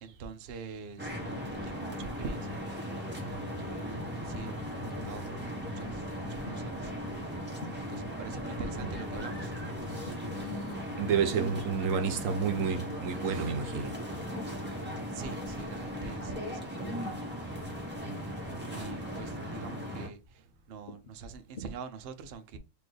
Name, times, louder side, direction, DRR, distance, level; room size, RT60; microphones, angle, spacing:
voice 1, 0.0-7.4 7.8-9.5 14.8-17.1 17.4-22.6, right 5 dB, 60° right, 0.7 m, -45 dB
sound 1, 1.0-20.1, equal, 10° right, 1.1 m, -37 dB
sound 2, 2.1-2.6 3.5-3.9 5.0-5.4 6.4-6.9 7.6-8.1 8.8-9.1 10.0-10.4 11.5-11.8 12.9-13.2 14.1-14.4 15.1-15.4 16.5-16.8 17.6-17.9 18.9-19.2 19.7-20.0 20.9-21.2 21.6-21.7, left 1 dB, 50° left, 0.7 m, -49 dB
voice 2, 11.0-14.0, right 6 dB, 75° right, 1.0 m, -30 dB
4.1 x 3.0 x 3.2 m
omnidirectional pair, 1.4 m